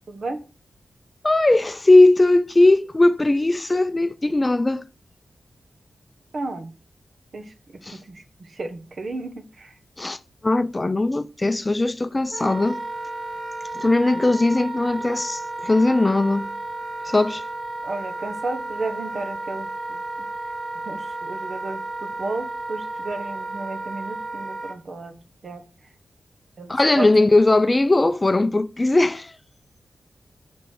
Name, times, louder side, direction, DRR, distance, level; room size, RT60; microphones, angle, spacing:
voice 1, 0.1-0.4 6.3-6.7 7.3-9.7 17.8-20.0 20.8-25.2 25.4-25.6 26.6-27.3, right 2 dB, 60° right, 1.3 m, -33 dB
voice 2, 1.2-4.8 7.9-8.0 10.0-10.2 10.4-12.8 13.7-16.5 17.0-17.4 26.7-29.3, left 2 dB, 25° left, 0.5 m, -19 dB
Wind instrument woodwind instrument, 12.3-24.8, right 2 dB, 45° right, 1.1 m, -33 dB
5.3 x 5.3 x 6.3 m
wide cardioid pair, 80°, 0 cm